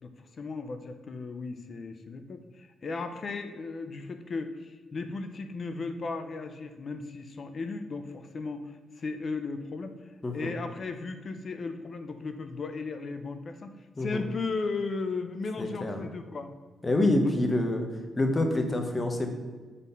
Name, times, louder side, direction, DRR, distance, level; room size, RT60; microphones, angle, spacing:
voice 1, 0.0-16.5 17.2-17.4, left 3 dB, 40° left, 8 dB, 0.6 m, -36 dB
voice 2, 15.6-16.0 16.8-17.8 18.2-19.3, left 1 dB, 20° left, 4 dB, 0.9 m, -26 dB
7.2 x 4.2 x 5.4 m, 1.4 s
wide cardioid pair, 160°, 0 cm